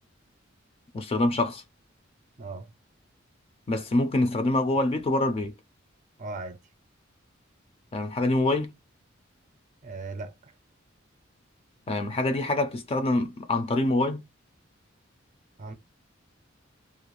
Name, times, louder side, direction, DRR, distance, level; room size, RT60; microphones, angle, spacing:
voice 1, 0.9-1.6 3.7-5.5 7.9-8.7 11.9-14.2, left 2 dB, 30° left, 0.4 m, -25 dB
voice 2, 2.4-2.7 6.2-6.6 9.8-10.5 15.6-15.7, right 3 dB, 40° right, 0.5 m, -38 dB
2.5 x 2.2 x 3.0 m
head